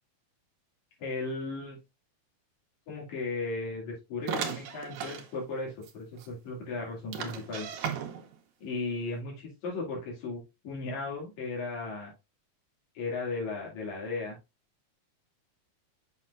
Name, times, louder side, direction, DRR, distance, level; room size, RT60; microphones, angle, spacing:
voice 1, 1.0-1.8 2.9-7.7 8.6-12.1 13.0-14.4, left 3 dB, 70° left, -3 dB, 3.8 m, -36 dB
sound 1, 4.3-5.3 5.8-5.9 6.2-6.3 7.1-8.4, right 8 dB, 75° right, 2.3 m, -36 dB
6.5 x 6.3 x 2.5 m, 0.24 s
omnidirectional pair, 3.4 m